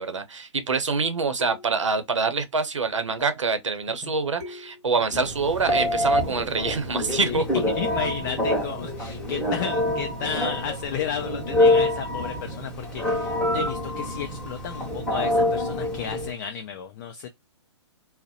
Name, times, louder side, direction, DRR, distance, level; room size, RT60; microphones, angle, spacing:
voice 1, 0.0-7.4, right 4 dB, 85° right, 0.6 m, -26 dB
sound 1, 1.4-1.9 3.2-3.5 4.4-5.0 5.8-6.3 7.1-7.6 8.2-9.9 11.0-11.4 12.8-13.1, left 5 dB, 20° right, 1.1 m, -43 dB
Telephone, 5.1-16.3, left 1 dB, 5° left, 1.1 m, -26 dB
voice 2, 7.7-17.3, left 8 dB, 40° left, 0.4 m, -33 dB
2.4 x 2.0 x 2.6 m
hypercardioid pair, 125°, 15 cm